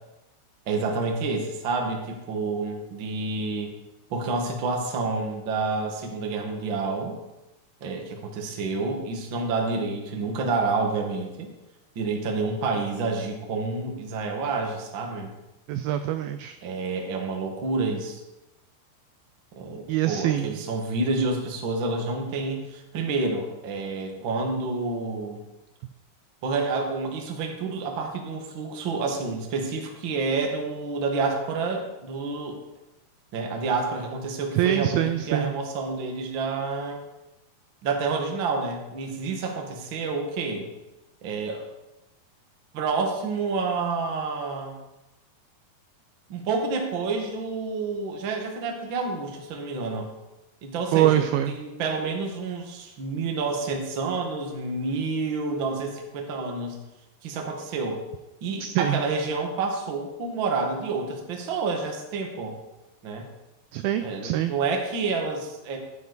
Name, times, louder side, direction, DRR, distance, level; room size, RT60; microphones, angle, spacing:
voice 1, 0.6-3.7 4.1-7.2 7.8-11.5 11.9-15.4 16.6-18.2 19.5-25.4 26.4-32.6 33.3-37.0 37.8-40.7 41.2-41.7 42.7-44.8 46.3-50.1 50.6-56.8 57.2-58.0 58.4-62.6 63.0-63.3 64.0-65.8, right 3 dB, 50° right, 2 dB, 1.5 m, -29 dB
voice 2, 15.7-16.6 19.9-20.6 34.6-35.5 50.9-51.5 58.6-59.0 63.7-64.5, right 12 dB, 85° right, 9 dB, 2.2 m, -24 dB
14.5 x 9.6 x 4.0 m, 1.0 s
omnidirectional pair, 4.7 m